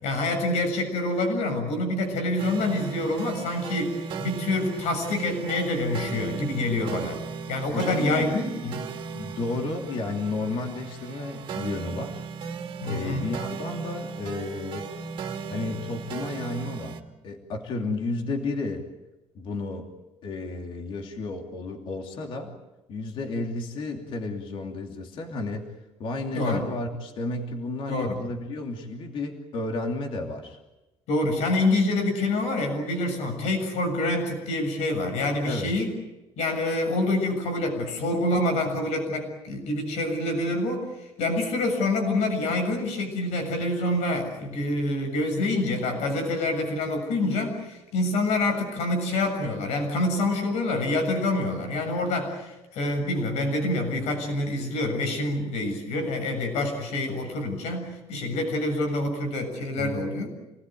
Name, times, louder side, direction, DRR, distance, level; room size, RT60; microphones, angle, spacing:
voice 1, 0.0-7.2 7.5-8.8 12.8-13.3 26.3-26.7 27.9-28.2 31.1-35.9 36.4-40.9 41.2-60.3, left 2 dB, 85° left, 5 dB, 7.1 m, -26 dB
sound 1, 2.4-17.0, right 5 dB, 45° right, 2.5 m, -36 dB
voice 2, 7.7-8.3 9.1-12.2 12.8-14.9 15.5-17.0 17.2-18.9 19.3-19.9 20.2-22.6 22.9-25.7 26.0-30.6 35.4-35.7 59.7-60.0, left 2 dB, 50° left, 3 dB, 2.9 m, -32 dB
28.5 x 20.0 x 9.3 m, 1.0 s
cardioid pair, 175°, 11 cm